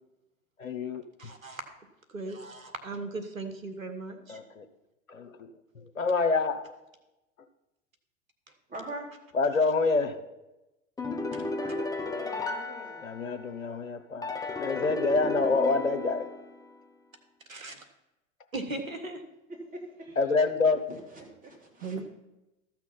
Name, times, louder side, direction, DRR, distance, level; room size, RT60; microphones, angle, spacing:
voice 1, 0.6-1.0 4.3-4.6 5.1-5.3 6.0-6.6 9.4-10.2 13.0-16.3 20.2-20.8, left 3 dB, 85° left, 9 dB, 0.9 m, -26 dB
voice 2, 1.2-1.6 2.1-4.4 17.5-17.8 18.5-19.2 21.8-22.1, right 3 dB, 90° right, 6 dB, 1.5 m, -37 dB
voice 3, 8.7-9.1 11.5-13.0 19.5-20.1 20.4-21.9, right 2 dB, 20° right, -1 dB, 3.3 m, -43 dB
sound 1, 11.0-13.6 14.2-16.7, left 3 dB, 10° left, 1.0 m, -34 dB
13.5 x 6.0 x 5.8 m, 0.98 s
hypercardioid pair, 90°, 39 cm